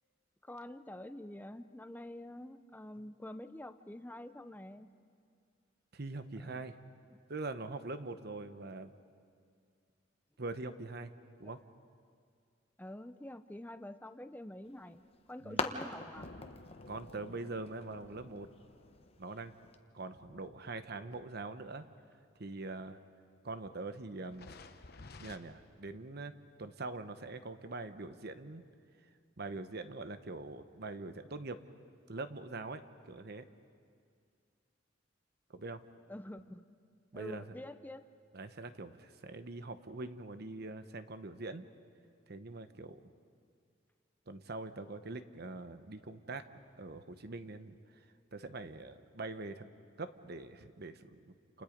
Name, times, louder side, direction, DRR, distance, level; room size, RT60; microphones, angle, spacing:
voice 1, 0.4-4.9 6.3-6.6 7.1-7.2 11.4-11.5 12.8-15.0 15.3-16.3 36.1-36.8 37.1-38.0, left 1 dB, 10° left, 10 dB, 0.7 m, -47 dB
voice 2, 5.9-6.8 7.3-8.9 10.4-11.1 11.4-11.6 15.4-15.6 16.9-18.5 19.2-19.5 19.9-21.9 22.4-23.0 23.4-24.5 25.2-26.3 26.6-28.6 29.4-31.6 32.1-33.5 35.5-35.8 37.1-37.4 38.3-41.7 42.3-43.0 44.3-46.5 46.7-48.0 48.3-49.7 50.0-51.6, right 3 dB, 55° right, 10 dB, 1.0 m, -43 dB
sound 1, 14.6-19.8, left 4 dB, 30° left, 1.1 m, -44 dB
sound 2, 16.2-21.6 22.3-22.4 24.3-25.4, left 2 dB, 55° left, 1.0 m, -54 dB
29.0 x 28.5 x 5.2 m, 2.2 s
head